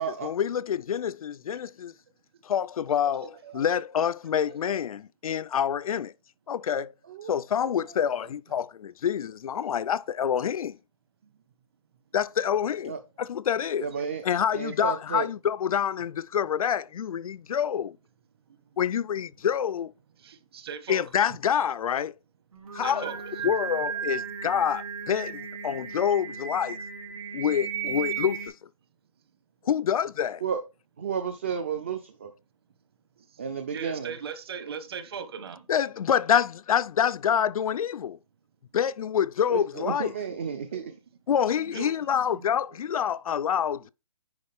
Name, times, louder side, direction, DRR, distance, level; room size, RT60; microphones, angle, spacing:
voice 1, 0.2-1.9 2.4-6.1 6.5-6.9 7.3-10.8 12.1-12.9 13.2-13.9 14.2-18.0 18.8-19.9 20.9-22.1 22.7-23.1 23.4-26.8 27.3-28.5 29.7-30.4 35.7-38.2 38.7-40.1 41.3-43.9, left 8 dB, 80° left, 0.5 m, -27 dB
voice 2, 3.0-3.7 4.5-4.6 11.2-11.3 13.9-14.0 18.5-18.6 20.2-21.1 22.7-23.5 33.3-33.4 33.7-35.7 40.5-40.7 41.5-42.4, right 6 dB, 45° right, 1.3 m, -40 dB
voice 3, 13.8-14.2 14.5-15.3 30.4-30.6 31.0-32.0 33.4-34.1 39.5-41.0, right 7 dB, 20° right, 0.4 m, -32 dB
Singing, 22.5-28.5, right 7 dB, 75° right, 3.1 m, -35 dB
9.6 x 4.7 x 3.5 m
hypercardioid pair, 175°, 18 cm